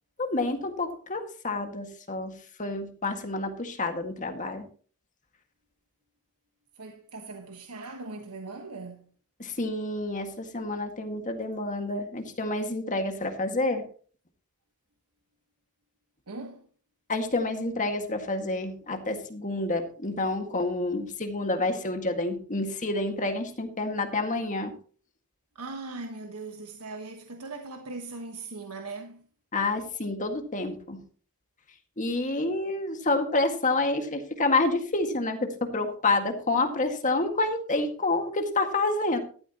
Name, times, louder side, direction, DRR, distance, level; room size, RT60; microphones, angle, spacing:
voice 1, 0.2-2.3 2.6-4.6 9.4-13.8 17.1-24.7 29.5-31.0 32.0-39.2, left 2 dB, 35° left, 1.9 m, -28 dB
voice 2, 6.8-9.1 16.3-16.6 25.5-29.2, right 3 dB, 90° right, 1.3 m, -39 dB
14.0 x 12.5 x 3.0 m
head